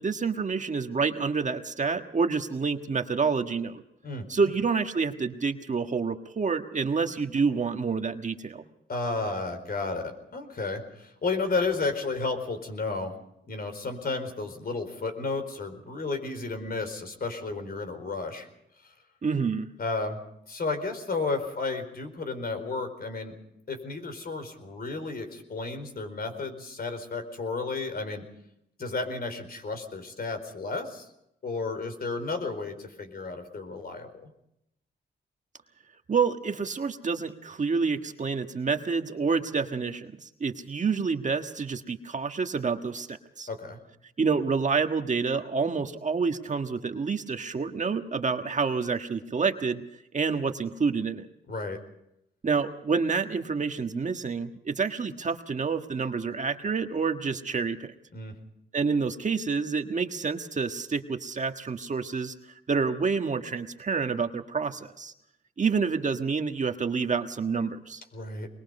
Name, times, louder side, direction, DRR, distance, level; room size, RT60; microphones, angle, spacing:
voice 1, 0.0-3.8 4.3-8.6 19.2-19.7 36.1-43.5 44.2-49.8 50.1-51.3 52.4-57.9 58.7-62.3 62.7-65.1 65.6-68.0, right 5 dB, 40° right, 6 dB, 1.5 m, -28 dB
voice 2, 8.9-13.1 13.5-18.5 19.8-20.2 20.5-23.3 23.7-28.2 28.8-31.1 31.4-34.3 43.5-43.8 51.5-51.8 58.1-58.4 68.1-68.5, left 3 dB, 55° left, 7 dB, 4.4 m, -32 dB
23.5 x 21.5 x 5.5 m, 0.79 s
cardioid pair, 85°, 19 cm